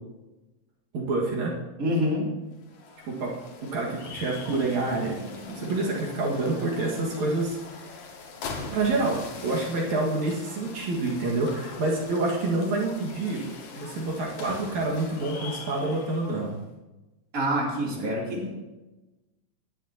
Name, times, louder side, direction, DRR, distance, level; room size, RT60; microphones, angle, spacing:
voice 1, 0.9-1.5 3.0-3.3 3.6-5.2 5.5-7.6 8.7-13.4 13.8-16.5 18.0-18.3, right 2 dB, 70° right, -3 dB, 3.2 m, -27 dB
voice 2, 1.8-2.3 17.3-18.6, equal, 30° right, -4 dB, 3.4 m, -26 dB
sound 1, 2.5-16.6, left 4 dB, 80° left, 3.0 m, -42 dB
sound 2, 4.5-7.5, equal, 90° right, 5.2 m, -46 dB
19.0 x 11.0 x 2.9 m, 1.1 s
omnidirectional pair, 3.3 m